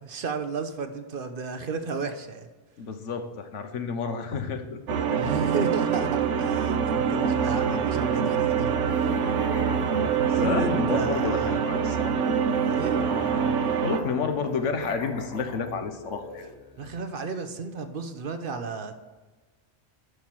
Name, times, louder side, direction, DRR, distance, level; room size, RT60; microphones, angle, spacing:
voice 1, 0.0-2.5 5.2-6.8 7.1-9.2 10.4-11.6 12.6-13.1 16.8-18.9, right 4 dB, 50° right, 8 dB, 0.9 m, -33 dB
voice 2, 2.8-5.2 7.2-7.4 9.9-12.2 13.8-16.5, left 5 dB, 90° left, 7 dB, 1.3 m, -31 dB
sound 1, 4.9-14.0, right 7 dB, 90° right, 1.0 m, -25 dB
Musical instrument, 6.8-17.0, left 2 dB, 35° left, 1.2 m, -43 dB
11.0 x 5.8 x 4.6 m, 1.3 s
omnidirectional pair, 1.2 m